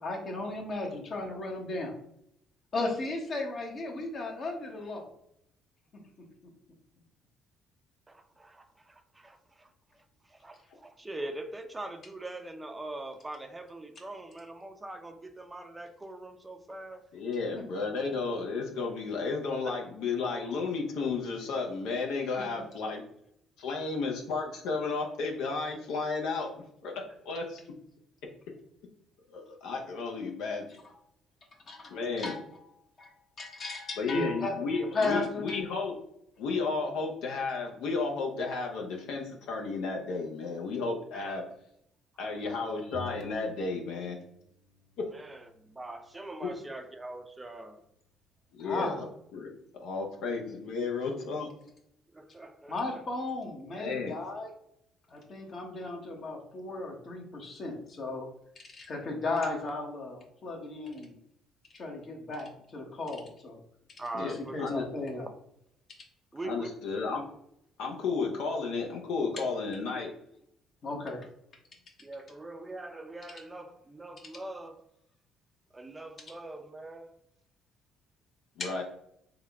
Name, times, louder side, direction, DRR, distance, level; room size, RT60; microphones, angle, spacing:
voice 1, 0.0-1.9 2.7-5.1 30.8-30.9 31.7-32.6 33.0-34.6 34.9-35.6 48.6-49.0 52.7-54.5 55.1-58.3 58.7-61.1 61.7-63.6 64.2-65.3 70.8-71.2 78.6-78.7, left 2 dB, 50° left, 2 dB, 1.0 m, -35 dB
voice 2, 8.1-17.0 19.6-19.7 41.1-41.3 45.1-47.8 52.1-53.0 64.0-64.9 66.3-66.8 72.0-74.8 75.7-77.2 78.6-78.8, right 2 dB, 20° right, 7 dB, 0.5 m, -42 dB
voice 3, 17.1-23.0 23.6-26.5 26.8-26.9 27.2-27.6 29.3-30.7 31.9-32.4 34.0-36.0 36.4-41.4 42.2-44.2 48.5-49.0 49.3-49.5 49.8-51.5 53.8-54.2 64.1-64.8 66.4-67.2 67.8-70.1 78.6-78.8, left 4 dB, 70° left, 1 dB, 0.6 m, -33 dB
sound 1, 42.9-44.4 44.7-46.5, left 2 dB, 65° right, 0.8 m, -49 dB
3.5 x 2.3 x 3.4 m, 0.75 s
hypercardioid pair, 55°, 0 cm